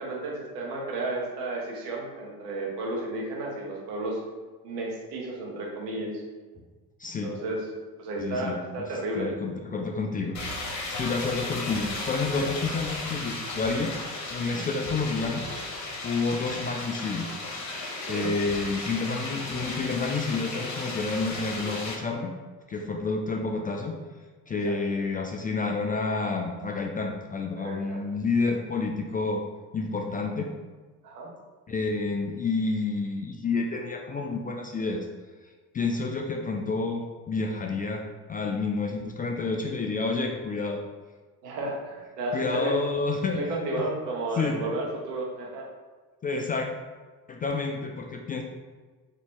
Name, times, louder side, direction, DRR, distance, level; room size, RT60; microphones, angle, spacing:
voice 1, 0.0-4.2 4.6-6.1 7.2-7.6 8.0-9.3 14.5-14.6 18.1-18.3 24.6-24.7 27.6-28.0 31.0-31.3 41.4-42.7 43.3-45.7, right 2 dB, 75° right, -2 dB, 1.2 m, -32 dB
voice 2, 7.0-7.3 8.2-8.6 9.1-10.4 10.9-13.9 14.3-15.5 16.0-17.4 18.1-22.3 22.7-24.0 24.5-29.4 29.7-30.5 31.7-35.1 35.7-40.8 42.3-43.4 43.8-43.9 44.4-44.6 46.2-46.7 47.3-48.4, left 3 dB, 20° left, 2 dB, 0.3 m, -29 dB
sound 1, 10.3-21.9, left 2 dB, 35° left, 1.3 m, -35 dB
4.0 x 3.0 x 3.7 m, 1.4 s
hypercardioid pair, 60°, 47 cm